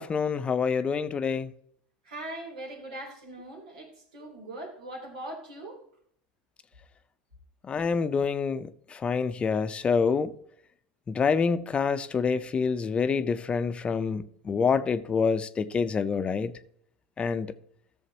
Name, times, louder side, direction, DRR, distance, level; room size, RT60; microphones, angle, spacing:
voice 1, 0.0-1.5 7.6-10.3 11.1-16.5 17.2-17.5, left 5 dB, 30° left, 0.6 m, -27 dB
voice 2, 2.0-5.8, right 1 dB, 85° right, 3.3 m, -41 dB
14.0 x 7.0 x 2.9 m
hypercardioid pair, 95°, 4 cm